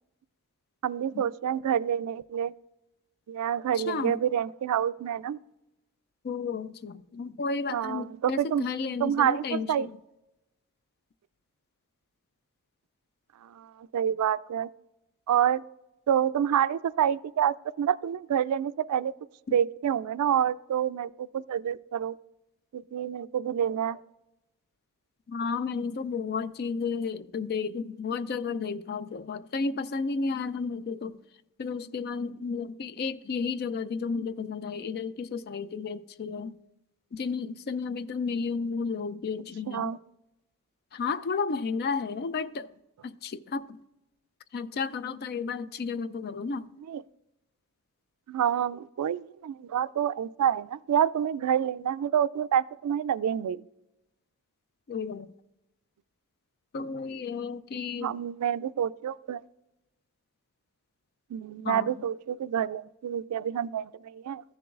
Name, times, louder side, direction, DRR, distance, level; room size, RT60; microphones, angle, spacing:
voice 1, 0.8-2.5 3.3-5.4 7.7-8.6 9.0-9.9 13.4-14.7 15.3-15.6 16.1-19.1 19.5-22.2 22.7-24.0 39.7-40.0 46.9-47.0 48.3-53.6 58.0-59.4 61.3-64.4, right 9 dB, 85° right, 0.3 m, -28 dB
voice 2, 3.8-4.2 6.2-9.9 25.3-31.2 31.6-36.6 37.1-39.9 40.9-42.7 43.0-43.7 44.5-46.7 54.9-55.3 56.7-58.1 61.6-61.9, left 5 dB, 45° left, 0.4 m, -32 dB
14.0 x 6.9 x 2.4 m
head